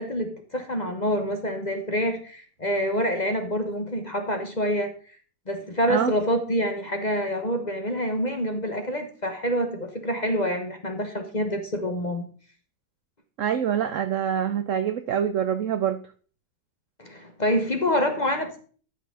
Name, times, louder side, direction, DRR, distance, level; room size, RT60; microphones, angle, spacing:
voice 1, 0.0-4.9 5.5-12.3 17.0-18.6, equal, 30° left, 5 dB, 1.0 m, -27 dB
voice 2, 13.4-16.0, right 9 dB, 75° right, 11 dB, 0.7 m, -25 dB
13.5 x 6.0 x 3.7 m, 0.43 s
omnidirectional pair, 2.0 m